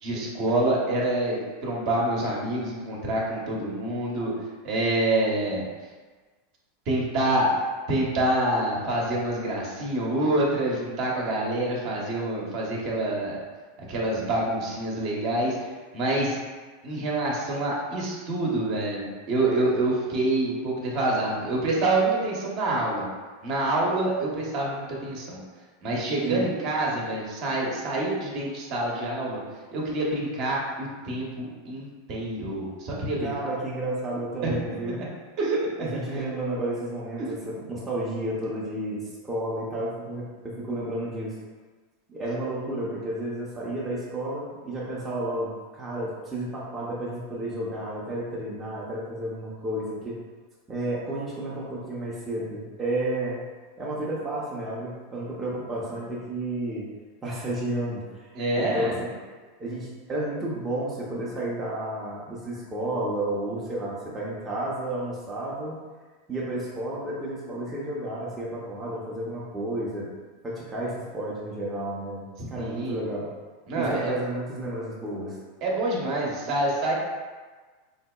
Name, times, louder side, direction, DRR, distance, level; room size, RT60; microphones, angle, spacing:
voice 1, 0.0-4.3 4.6-5.6 6.9-13.4 13.9-16.4 16.8-23.1 23.4-25.4 25.8-29.4 29.7-33.3 34.4-34.6 35.0-35.1 35.4-36.0 37.2-37.3 58.3-58.9 72.4-73.0 73.7-74.1 75.6-76.9, right 1 dB, 50° right, -3 dB, 0.8 m, -27 dB
voice 2, 33.2-35.0 35.8-41.3 42.1-50.2 50.7-53.4 53.8-56.9 57.2-59.1 59.6-65.8 66.3-70.1 70.4-73.3 73.7-75.4, right 1 dB, 15° right, -7 dB, 0.6 m, -31 dB
3.6 x 2.7 x 2.3 m, 1.4 s
supercardioid pair, 135°, 0 cm